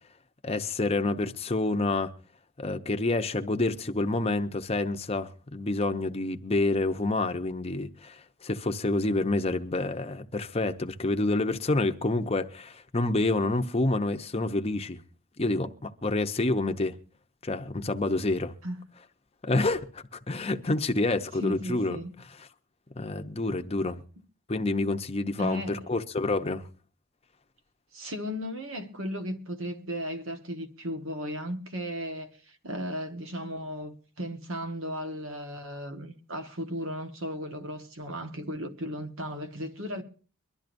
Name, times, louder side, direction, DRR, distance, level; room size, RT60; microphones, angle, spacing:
voice 1, 0.4-2.1 2.6-15.0 15.4-17.0 17.4-18.5 19.4-22.0 23.0-24.0 24.5-26.6, left 2 dB, 30° left, 0.8 m, -28 dB
voice 2, 21.4-22.1 25.4-25.9 27.9-40.0, equal, 70° right, 1.4 m, -35 dB
23.5 x 12.0 x 2.6 m
head